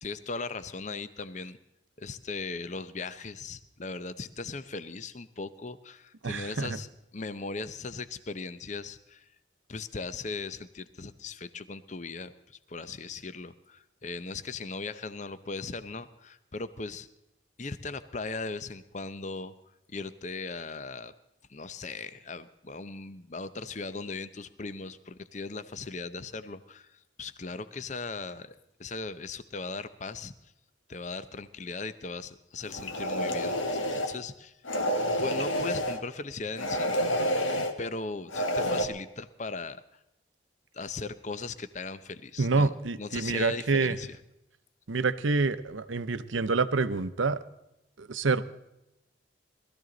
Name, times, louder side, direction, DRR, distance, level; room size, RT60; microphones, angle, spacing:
voice 1, 0.0-1.6 2.0-9.3 9.7-17.1 17.6-19.5 19.9-21.1 21.5-28.5 28.8-30.3 30.9-34.5 35.2-36.9 37.8-39.8 40.7-42.7 43.0-44.2, left 3 dB, 40° left, 13 dB, 0.7 m, -38 dB
voice 2, 6.2-6.8 42.4-44.0 44.9-47.4 48.0-48.4, right 4 dB, 80° right, 12 dB, 0.8 m, -27 dB
sound 1, 32.7-34.2 34.6-36.0 36.6-37.7 38.3-38.8, equal, 85° left, 1.6 m, -29 dB
20.0 x 14.0 x 3.9 m, 0.87 s
head